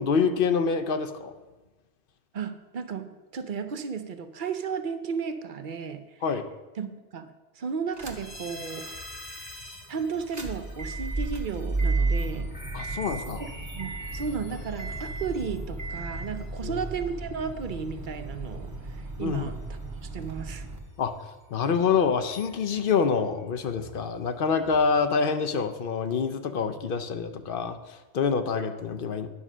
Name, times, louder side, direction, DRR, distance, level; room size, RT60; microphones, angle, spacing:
voice 1, 0.0-1.3 6.2-6.5 12.7-13.4 16.6-16.8 19.2-19.5 21.0-21.1 21.5-29.3, left 5 dB, 60° left, 8 dB, 0.8 m, -26 dB
voice 2, 2.3-3.1 3.3-6.2 6.8-7.3 7.6-9.0 9.9-12.5 13.4-19.6 20.0-20.7, right 6 dB, 55° right, 10 dB, 0.8 m, -34 dB
sound 1, 7.9-8.4 8.9-9.0 10.1-20.8, right 3 dB, 20° right, 0.9 m, -33 dB
sound 2, 8.0-25.0, equal, 85° left, 2.4 m, -48 dB
9.8 x 5.5 x 6.0 m, 1.2 s
omnidirectional pair, 1.1 m